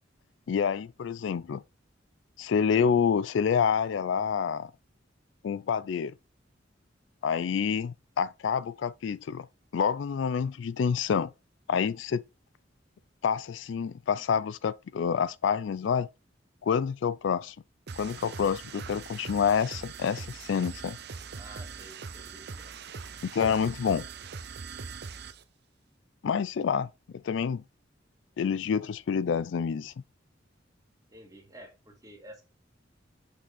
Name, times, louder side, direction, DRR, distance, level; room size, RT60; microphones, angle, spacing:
voice 1, 0.5-1.6 2.4-4.7 5.4-6.1 7.2-9.5 9.7-11.3 11.7-12.2 13.2-16.1 16.6-17.6 18.0-21.0 23.2-24.1 26.2-26.9 27.2-27.6 28.4-29.9, left 7 dB, 75° left, 0.4 m, -28 dB
sound 1, 17.9-25.4, right 5 dB, 60° right, 0.7 m, -42 dB
voice 2, 21.4-22.7 31.1-32.4, right 1 dB, 20° right, 2.0 m, -50 dB
6.1 x 5.5 x 4.0 m
head